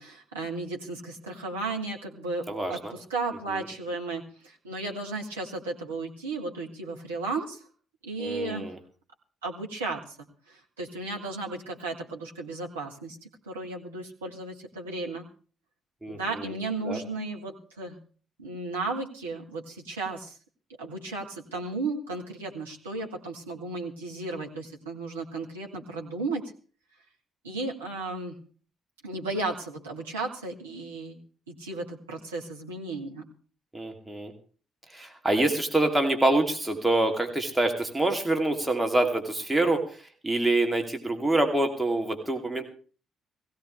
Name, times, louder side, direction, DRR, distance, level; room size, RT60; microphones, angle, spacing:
voice 1, 0.0-7.6 8.0-8.7 9.4-10.2 10.5-15.3 16.1-18.0 18.4-20.4 20.8-26.5 27.4-28.4 29.0-31.2 31.5-33.2, right 3 dB, 80° right, -1 dB, 1.5 m, -34 dB
voice 2, 2.5-2.9 8.2-8.8 16.0-16.5 16.8-17.0 33.7-34.3 34.9-42.6, right 2 dB, 10° right, 3 dB, 2.8 m, -26 dB
18.5 x 16.5 x 3.3 m, 0.40 s
figure-of-eight pair, 45°, 0 cm